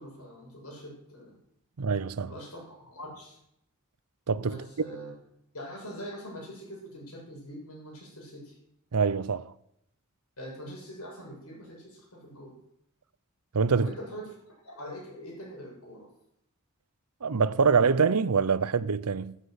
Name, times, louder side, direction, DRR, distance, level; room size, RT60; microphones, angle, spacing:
voice 1, 0.0-1.4 2.2-3.4 4.4-5.1 5.5-8.6 10.4-12.6 13.8-14.3 14.6-16.1, equal, 80° left, 7.9 m, -43 dB
voice 2, 1.8-2.3 4.3-4.7 8.9-9.5 13.5-13.9 17.2-19.4, right 5 dB, 85° right, 0.7 m, -25 dB
13.5 x 13.5 x 8.0 m
head